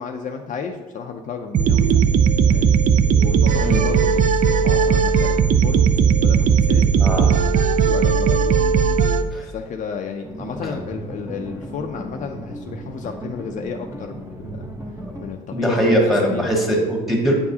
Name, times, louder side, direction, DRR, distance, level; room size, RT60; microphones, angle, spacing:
voice 1, 0.0-2.0 2.5-2.7 3.2-5.9 6.2-6.8 7.8-8.5 9.2-14.7 15.2-16.7, left 6 dB, 50° left, 4 dB, 0.4 m, -32 dB
sound 1, 1.5-9.2, right 6 dB, 50° right, 0.4 m, -17 dB
voice 2, 3.5-3.9 7.0-7.3 9.3-9.5 10.6-10.7 15.0-15.1 15.5-17.3, equal, ahead, -1 dB, 1.5 m, -20 dB
sound 2, 10.2-15.3, right 1 dB, 15° right, 0.9 m, -35 dB
8.3 x 4.7 x 2.8 m, 1.3 s
cardioid pair, 110°, 17 cm